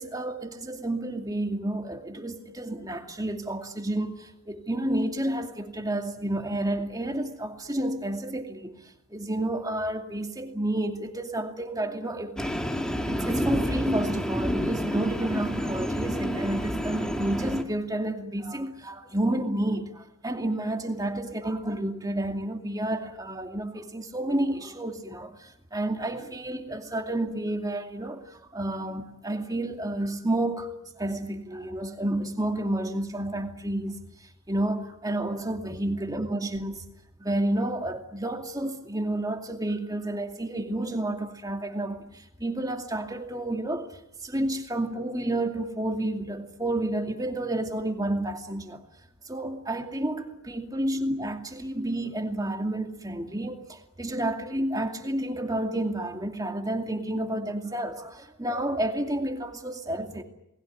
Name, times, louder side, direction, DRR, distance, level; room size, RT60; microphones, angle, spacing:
voice 1, 0.0-12.5 13.0-34.0 34.5-36.8 37.2-43.9 44.2-48.8 49.3-60.2, right 1 dB, 15° right, 2.5 m, -30 dB
Train, 12.4-17.6, equal, 5° left, 2.0 m, -29 dB
29.0 x 21.0 x 9.5 m
head